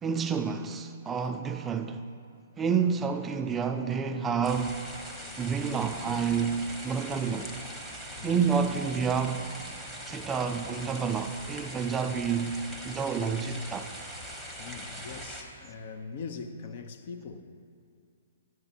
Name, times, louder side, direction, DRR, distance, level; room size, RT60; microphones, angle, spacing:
voice 1, 0.0-2.0 2.6-4.9 5.4-7.5 8.2-9.5 10.1-13.9, right 6 dB, 15° right, 0.3 m, -29 dB
sound 1, 4.4-15.4, equal, 5° left, 1.0 m, -42 dB
voice 2, 8.2-8.5 14.6-17.4, left 5 dB, 50° left, 0.6 m, -41 dB
11.0 x 8.0 x 2.8 m
hypercardioid pair, 130°, 0 cm